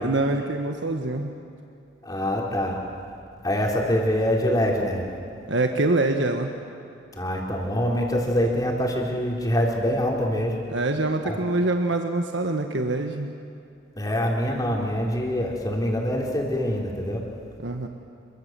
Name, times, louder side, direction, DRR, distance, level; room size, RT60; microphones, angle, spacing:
voice 1, 0.0-1.3 5.5-6.5 10.7-13.3 17.6-17.9, right 2 dB, 75° right, 4 dB, 1.5 m, -25 dB
voice 2, 2.0-2.8 3.4-5.0 7.1-10.6 11.2-11.4 14.0-17.2, equal, 20° left, -1 dB, 3.9 m, -24 dB
26.5 x 24.0 x 7.6 m, 2.7 s
head